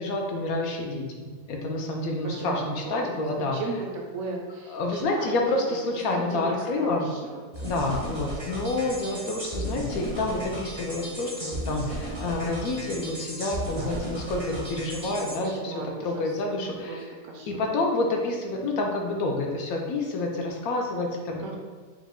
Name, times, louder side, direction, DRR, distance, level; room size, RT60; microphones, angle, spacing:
voice 1, 0.0-3.6 4.7-7.1 7.6-17.0 17.5-21.4, left 2 dB, 70° left, 1 dB, 1.0 m, -28 dB
voice 2, 2.2-2.6 2.9-3.3 3.5-5.4 6.1-7.4 13.7-14.0 15.4-16.3 16.9-17.7 21.4-21.6, right 3 dB, 70° right, 0 dB, 0.9 m, -36 dB
sound 1, 7.5-15.4, right 1 dB, 30° right, 0.5 m, -35 dB
4.9 x 2.1 x 3.6 m, 1.5 s
omnidirectional pair, 1.7 m